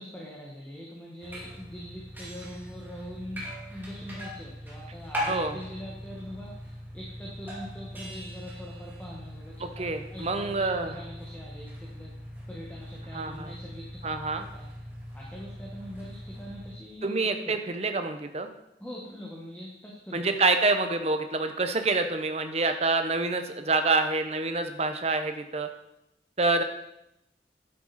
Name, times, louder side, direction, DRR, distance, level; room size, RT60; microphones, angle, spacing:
voice 1, 0.0-10.7 10.9-12.2 12.5-14.1 14.5-14.7 15.1-17.1 17.4-17.6 18.8-20.3, equal, 10° left, -3 dB, 1.4 m, -43 dB
sound 1, 1.2-16.7, equal, 10° right, 2.3 m, -40 dB
voice 2, 5.3-5.6 9.6-10.9 13.1-13.5 14.0-14.5 17.0-18.5 20.1-25.7 26.4-26.6, right 3 dB, 35° right, 7 dB, 0.9 m, -27 dB
11.0 x 7.9 x 4.2 m, 0.84 s
head